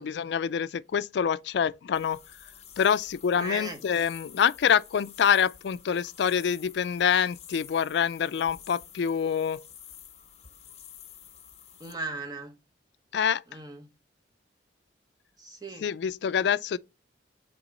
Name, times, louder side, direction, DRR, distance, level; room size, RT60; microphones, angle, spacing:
voice 1, 0.0-2.2 2.8-9.6 13.1-13.4 15.8-16.8, left 7 dB, 70° left, 0.3 m, -26 dB
sound 1, 1.9-11.9, left 9 dB, 35° left, 0.8 m, -50 dB
voice 2, 3.3-3.8 11.8-12.6 13.5-13.9 15.4-15.9, right 2 dB, 20° right, 1.2 m, -37 dB
8.1 x 3.0 x 5.1 m
head